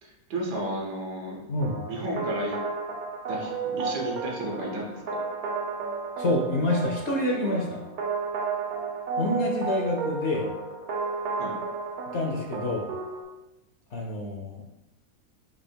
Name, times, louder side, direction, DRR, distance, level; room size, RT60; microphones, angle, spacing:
voice 1, 0.0-1.4 1.9-2.5 3.3-5.0 11.4-11.6, right 1 dB, 90° right, -1 dB, 1.6 m, -33 dB
voice 2, 1.5-1.8 6.2-7.8 9.2-10.5 12.1-12.9 13.9-14.6, left 1 dB, 60° left, 0 dB, 0.8 m, -27 dB
sound 1, 1.6-13.2, right 4 dB, 65° right, 0.7 m, -33 dB
4.3 x 2.8 x 4.4 m, 0.94 s
omnidirectional pair, 1.7 m